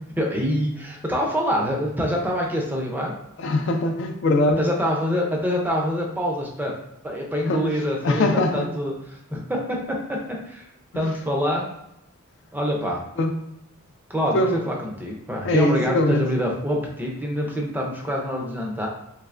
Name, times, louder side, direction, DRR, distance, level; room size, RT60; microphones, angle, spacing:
voice 1, 0.2-3.1 4.6-6.7 7.0-8.9 9.3-10.0 10.3-10.6 10.9-11.7 12.5-13.0 14.1-18.9, equal, 10° right, -1 dB, 0.4 m, -25 dB
voice 2, 3.4-4.6 7.5-7.7 8.0-8.7 10.9-11.1 13.2-13.3 14.3-14.6 15.4-16.3, left 2 dB, 55° left, 5 dB, 0.3 m, -21 dB
3.2 x 2.9 x 2.4 m, 0.81 s
head